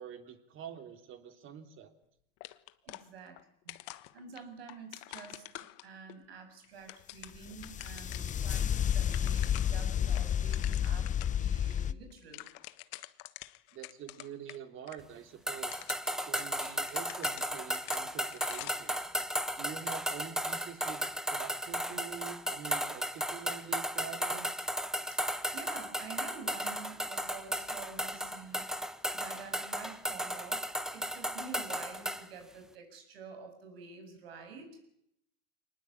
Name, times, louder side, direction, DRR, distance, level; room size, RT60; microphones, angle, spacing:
voice 1, 0.0-1.9 13.7-15.9 16.2-19.0 19.6-21.0 21.3-24.5, right 8 dB, 45° right, 7 dB, 3.4 m, -46 dB
sound 1, 2.4-3.4 3.7-6.2 6.6-8.4 8.8-8.9 9.0-9.8 10.1-11.4 11.7-11.8 12.1-14.6 14.9-15.0 15.5-18.9, left 20 dB, 55° left, 1.3 m, -47 dB
voice 2, 2.8-12.5 25.1-34.9, right 5 dB, 85° right, 6 dB, 7.6 m, -49 dB
sound 2, 7.3-11.9, left 9 dB, 25° left, 0.9 m, -31 dB
sound 3, 15.5-32.3, equal, ahead, 1.4 m, -35 dB
24.5 x 19.5 x 8.7 m, 0.76 s
hypercardioid pair, 105°, 29 cm